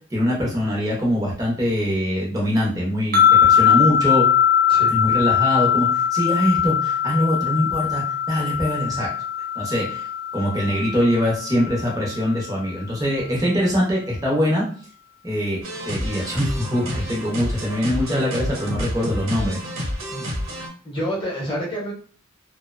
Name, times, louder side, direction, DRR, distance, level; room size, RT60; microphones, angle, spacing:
voice 1, 0.1-4.3 4.9-9.1 9.6-10.1 10.3-14.6 15.2-19.6, equal, 15° right, -4 dB, 0.7 m, -23 dB
sound 1, 3.1-12.4, left 9 dB, 45° right, 0.4 m, -21 dB
sound 2, 15.6-20.7, equal, 80° right, 0.8 m, -29 dB
voice 2, 20.8-21.9, equal, 25° left, -4 dB, 0.9 m, -28 dB
2.7 x 2.1 x 2.5 m, 0.42 s
head